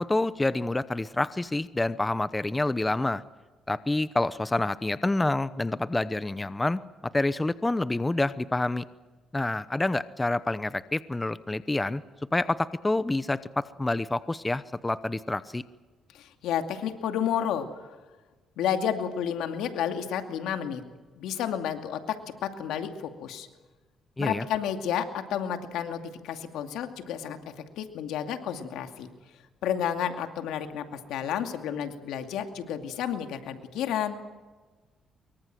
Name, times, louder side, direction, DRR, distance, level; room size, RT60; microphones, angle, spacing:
voice 1, 0.0-3.2 3.7-8.8 9.3-12.0 12.3-15.6 24.2-24.4, left 2 dB, 15° left, 15 dB, 0.8 m, -28 dB
voice 2, 16.1-17.7 18.6-20.8 21.2-22.2 22.4-23.5 24.2-27.4 27.8-29.1 29.6-34.2, left 9 dB, 90° left, 6 dB, 2.4 m, -31 dB
24.5 x 23.0 x 7.8 m, 1.3 s
cardioid pair, 90°, 0 cm